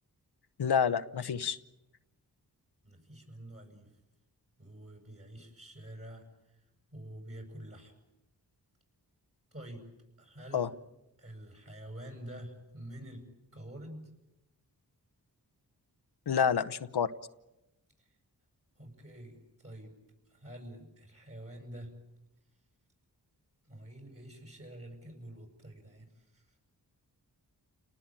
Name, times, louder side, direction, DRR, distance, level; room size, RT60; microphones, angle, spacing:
voice 1, 0.6-1.6 10.5-10.7 16.3-17.1, left 7 dB, 75° left, 11 dB, 1.0 m, -28 dB
voice 2, 2.8-3.9 4.6-6.6 6.9-7.9 9.5-9.9 10.2-10.7 11.2-14.1 18.0-18.1 18.8-19.9 20.3-21.9 23.6-26.5, right 1 dB, 35° right, 3 dB, 7.4 m, -47 dB
30.0 x 19.0 x 9.0 m, 0.95 s
cardioid pair, 55°, 39 cm